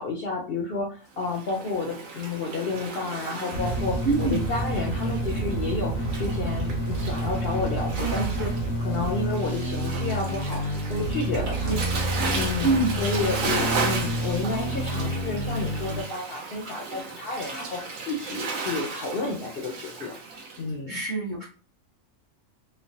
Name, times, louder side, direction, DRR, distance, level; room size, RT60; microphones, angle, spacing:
voice 1, 0.0-8.5 8.8-11.8 12.4-20.1 20.6-21.0, left 3 dB, 60° left, -1 dB, 0.6 m, -31 dB
Waves surf, 1.2-20.6, right 4 dB, 75° right, 1.1 m, -35 dB
sound 1, 3.5-16.0, right 1 dB, 80° left, 1.0 m, -29 dB
voice 2, 4.0-4.4 7.9-8.3 11.7-11.8 12.6-13.0 20.9-21.5, right 3 dB, 45° right, -4 dB, 0.8 m, -25 dB
3.1 x 2.0 x 2.6 m, 0.37 s
omnidirectional pair, 1.4 m